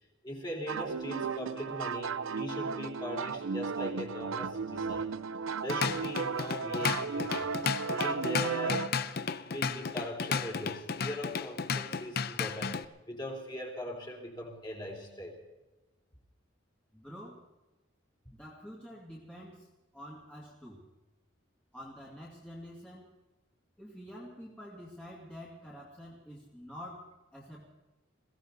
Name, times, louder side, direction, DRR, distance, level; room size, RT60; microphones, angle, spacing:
voice 1, 0.2-5.1 5.6-9.0 9.3-12.8 13.1-15.4, equal, 20° left, 0 dB, 3.3 m, -40 dB
sound 1, 0.7-8.9, right 5 dB, 80° right, 0.5 m, -35 dB
Drum kit / Drum, 5.5-12.8, left 5 dB, 50° left, 0.7 m, -33 dB
voice 2, 16.9-17.4 18.3-19.7 19.9-20.8 21.7-23.2 23.8-27.7, equal, 5° left, -5 dB, 2.6 m, -47 dB
22.0 x 16.5 x 4.0 m, 1.1 s
head